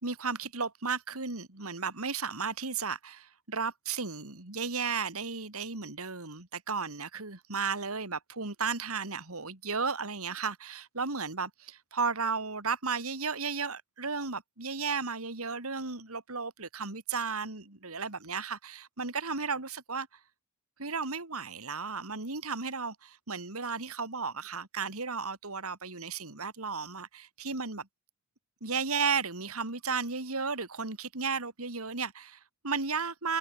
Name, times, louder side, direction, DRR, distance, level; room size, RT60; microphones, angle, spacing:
voice 1, 0.0-20.2 20.8-27.9 28.6-33.4, right 5 dB, 75° right, 3.3 m, -34 dB
head